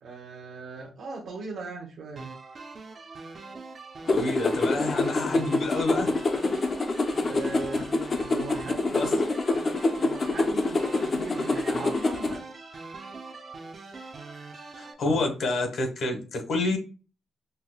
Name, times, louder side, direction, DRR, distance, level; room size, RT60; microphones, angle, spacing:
voice 1, 0.0-2.3 7.2-7.9 8.2-9.3 10.0-12.4, right 3 dB, 70° right, -2 dB, 0.8 m, -39 dB
sound 1, 2.2-14.9, right 3 dB, 35° right, 0.4 m, -42 dB
voice 2, 4.1-6.1 9.0-9.1 14.8-16.8, left 2 dB, 60° left, 4 dB, 1.0 m, -28 dB
sound 2, 4.1-12.4, left 2 dB, 30° left, 0.4 m, -26 dB
5.4 x 2.0 x 2.2 m, 0.35 s
wide cardioid pair, 160°, 0 cm